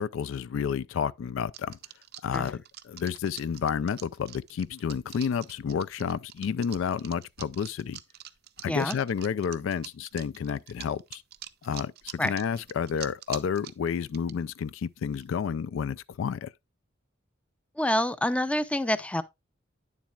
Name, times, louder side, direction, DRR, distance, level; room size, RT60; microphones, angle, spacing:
voice 1, 0.0-1.8 2.2-8.0 8.6-11.2 11.6-16.5, left 7 dB, 75° left, 0.3 m, -30 dB
sound 1, 1.5-14.3 15.1-15.3, right 12 dB, 55° right, 0.5 m, -44 dB
voice 2, 8.6-9.0 12.2-12.3 17.8-19.2, left 1 dB, 5° left, 0.4 m, -27 dB
9.5 x 7.3 x 2.3 m
head